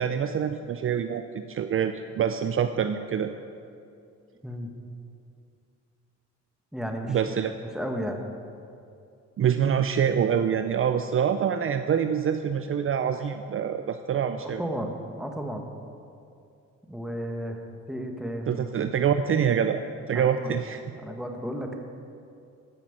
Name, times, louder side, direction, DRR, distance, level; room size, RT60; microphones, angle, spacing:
voice 1, 0.0-3.3 7.1-7.5 9.4-14.6 18.5-19.8 20.1-20.8, right 8 dB, 45° right, 9 dB, 0.5 m, -25 dB
voice 2, 6.7-7.2 7.7-8.2 14.4-15.7 16.9-17.6 17.9-18.7 20.1-20.5 20.9-21.8, equal, ahead, 2 dB, 1.5 m, -33 dB
13.0 x 5.9 x 7.9 m, 2.5 s
cardioid pair, 90°, 30 cm